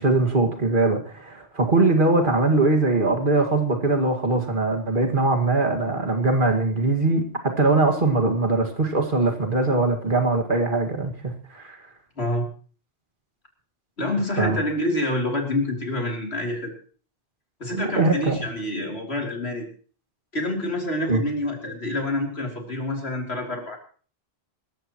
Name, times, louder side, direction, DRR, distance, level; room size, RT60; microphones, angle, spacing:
voice 1, 0.0-11.1 11.5-11.8 14.4-14.6 17.7-18.4 21.1-21.2, right 2 dB, 55° right, 4 dB, 2.1 m, -21 dB
voice 2, 14.0-16.7 17.6-19.7 20.3-23.8, left 1 dB, 80° left, 0 dB, 3.4 m, -27 dB
25.0 x 13.5 x 3.0 m, 0.42 s
omnidirectional pair, 1.1 m